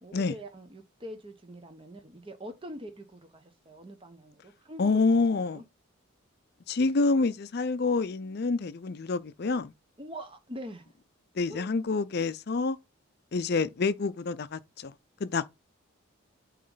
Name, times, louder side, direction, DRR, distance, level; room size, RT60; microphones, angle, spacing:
voice 1, 0.0-5.0 5.3-5.6 10.0-10.9 11.5-11.7, equal, 25° right, 1.0 m, -44 dB
voice 2, 4.8-5.6 6.7-9.7 11.4-12.8 13.3-14.9 15.2-15.5, left 3 dB, 50° left, 0.5 m, -27 dB
8.6 x 3.2 x 3.9 m
head